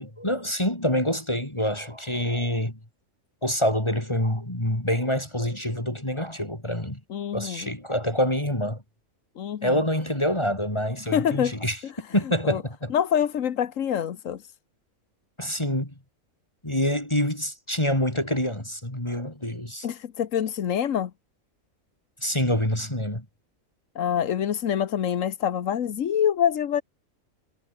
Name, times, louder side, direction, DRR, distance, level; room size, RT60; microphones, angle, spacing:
voice 1, 0.0-2.8 3.4-7.0 7.3-8.8 9.6-11.8 12.1-12.9 15.4-15.9 16.6-19.9 22.2-23.2, left 1 dB, 20° left, 4.2 m, -26 dB
voice 2, 7.1-7.7 9.4-9.8 11.1-11.5 12.4-12.6 12.9-14.5 19.8-21.1 23.9-26.8, left 9 dB, 70° left, 1.4 m, -26 dB
omnidirectional pair, 1.4 m